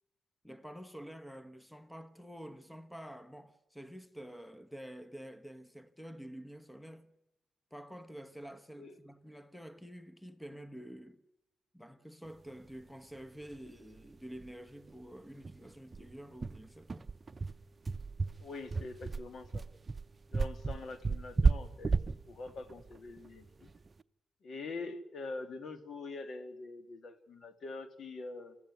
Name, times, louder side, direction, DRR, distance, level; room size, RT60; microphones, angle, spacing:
voice 1, 0.4-7.1 7.7-11.2 11.7-17.1, equal, 5° left, 1.2 m, -49 dB
sound 1, 13.5-13.6 13.9-14.0 14.4-14.5 14.9-15.0 15.4-23.9, right 4 dB, 35° right, 0.8 m, -33 dB
voice 2, 18.4-19.6 20.3-23.7 24.4-28.6, left 3 dB, 60° left, 2.2 m, -44 dB
27.5 x 14.5 x 9.6 m
cardioid pair, 80°, 0 cm